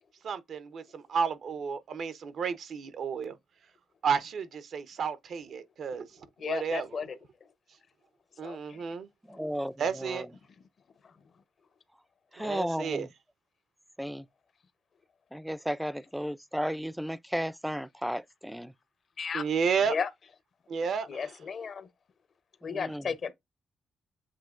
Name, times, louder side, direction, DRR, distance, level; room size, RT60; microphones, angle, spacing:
voice 1, 0.2-3.4 4.0-6.1 6.4-6.9 8.4-9.1 9.8-10.3 12.4-13.1 19.3-20.0 20.7-21.3, right 6 dB, 70° right, 0.7 m, -32 dB
voice 2, 6.4-7.2 8.4-8.8 9.3-9.4 19.2-19.4 19.8-20.1 21.1-21.9 22.6-23.3, left 6 dB, 60° left, 0.7 m, -34 dB
voice 3, 9.3-10.3 12.3-13.1 14.0-14.3 15.3-18.7 22.6-23.1, equal, 5° right, 0.4 m, -34 dB
7.5 x 2.8 x 2.4 m
cardioid pair, 70°, 0 cm